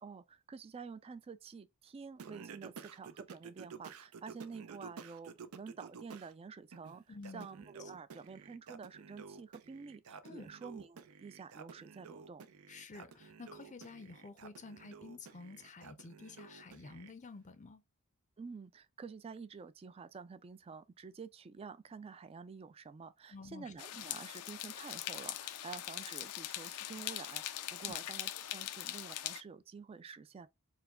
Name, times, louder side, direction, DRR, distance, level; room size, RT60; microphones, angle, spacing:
voice 1, 0.0-12.5 18.4-30.5, right 5 dB, 25° right, 0.3 m, -49 dB
Singing, 2.2-6.3 6.7-17.1, right 5 dB, 80° right, 0.5 m, -52 dB
voice 2, 7.1-7.5 10.2-10.5 12.7-17.8 23.3-23.7 27.9-28.0, left 3 dB, 35° left, 0.5 m, -50 dB
sound 1, 23.8-29.4, left 13 dB, 90° left, 0.4 m, -42 dB
4.6 x 2.1 x 3.6 m
head